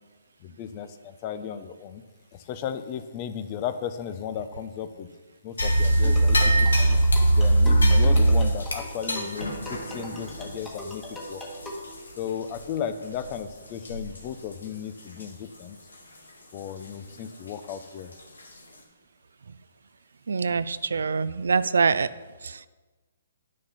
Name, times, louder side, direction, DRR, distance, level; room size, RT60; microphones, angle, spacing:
voice 1, 0.4-2.0 2.3-5.1 5.4-7.0 7.3-11.4 12.2-15.8 16.5-18.1, left 8 dB, 35° left, 10 dB, 0.7 m, -35 dB
sound 1, 5.6-12.2 12.5-12.6 13.2-13.4 13.9-14.2 14.5-14.6 15.2-15.3 17.7-17.8 18.4-18.5, right 1 dB, 90° left, 2.2 m, -22 dB
sound 2, 6.0-11.9, left 1 dB, 10° left, 1.8 m, -39 dB
voice 2, 20.3-22.1 22.4-22.7, right 5 dB, 75° right, 16 dB, 0.4 m, -24 dB
9.7 x 6.4 x 5.8 m, 1.3 s
hypercardioid pair, 140°, 0 cm